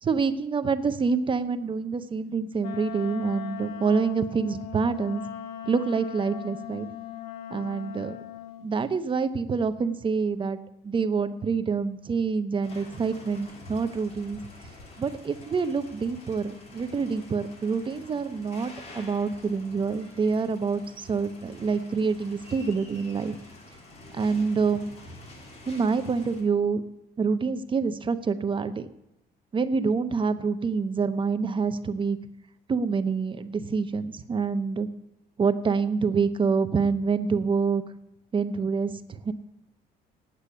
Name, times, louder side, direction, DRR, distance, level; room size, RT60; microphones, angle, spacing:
voice 1, 0.0-5.2 5.7-6.9 7.5-8.2 8.6-10.6 10.8-14.4 15.0-23.4 24.1-24.9 25.7-26.8 27.2-28.9 29.5-32.2 32.7-34.9 35.4-37.8 38.3-39.3, right 5 dB, 30° right, 12 dB, 0.7 m, -26 dB
Wind instrument woodwind instrument, 2.6-8.7, left 10 dB, 65° left, 1.0 m, -39 dB
sound 1, 12.6-26.4, left 2 dB, 40° left, 3.3 m, -47 dB
8.9 x 8.4 x 8.3 m, 0.88 s
cardioid pair, 110°, 17 cm